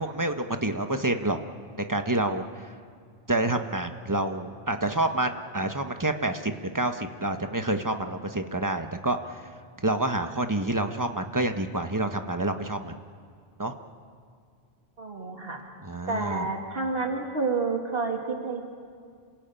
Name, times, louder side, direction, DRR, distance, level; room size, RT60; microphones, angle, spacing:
voice 1, 0.0-1.4 1.9-2.6 3.3-9.4 9.8-12.9 13.6-13.7 15.8-16.5, right 2 dB, 20° right, 6 dB, 1.2 m, -28 dB
voice 2, 15.0-15.6 16.1-18.6, right 4 dB, 70° right, 1 dB, 2.5 m, -29 dB
28.0 x 17.0 x 9.1 m, 2.1 s
omnidirectional pair, 1.0 m